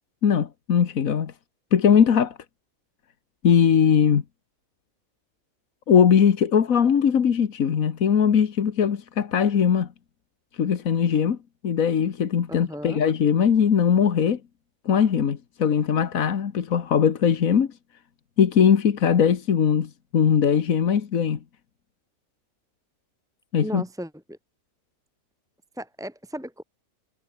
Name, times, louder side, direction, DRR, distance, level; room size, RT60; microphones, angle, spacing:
voice 1, 0.2-1.3 1.7-2.4 3.4-4.2 5.9-9.9 10.6-11.4 11.6-14.4 14.9-17.7 18.4-21.4 23.5-23.8, left 7 dB, 80° left, 1.7 m, -20 dB
voice 2, 12.5-13.0 23.6-24.4 25.8-26.6, equal, ahead, 2.7 m, -36 dB
omnidirectional pair, 1.4 m